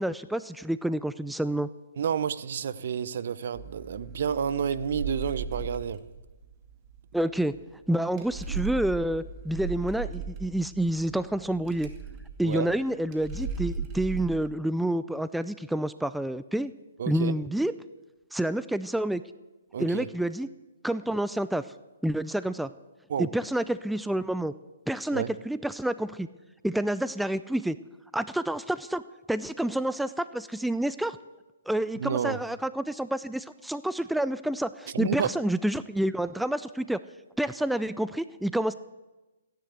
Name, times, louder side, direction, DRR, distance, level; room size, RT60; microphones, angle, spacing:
voice 1, 0.0-1.7 7.1-7.5 7.9-11.9 12.4-16.7 17.1-17.7 18.3-19.2 19.8-20.5 20.8-21.6 22.0-22.7 23.2-24.5 24.9-26.3 26.6-27.8 28.1-29.0 29.3-31.2 31.7-37.0 37.4-38.7, right 1 dB, ahead, 14 dB, 0.4 m, -28 dB
voice 2, 2.0-6.0 12.4-12.7 17.0-17.3 19.7-20.1 23.1-23.3 25.1-25.3 32.0-32.4 34.9-35.3, right 7 dB, 60° right, 16 dB, 0.8 m, -30 dB
sound 1, 3.5-14.4, right 5 dB, 30° right, 2.3 m, -38 dB
15.5 x 10.5 x 8.1 m, 1.1 s
figure-of-eight pair, 130°, 0 cm